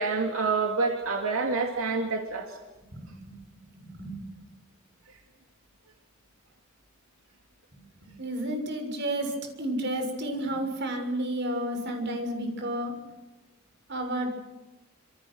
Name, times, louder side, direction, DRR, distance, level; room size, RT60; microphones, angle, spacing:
voice 1, 0.0-2.5, right 4 dB, 75° right, 2 dB, 2.8 m, -27 dB
voice 2, 2.9-3.4 3.8-4.2 7.7-13.1 13.9-14.3, right 1 dB, 55° right, 4 dB, 6.6 m, -32 dB
27.5 x 27.5 x 6.4 m, 1.1 s
head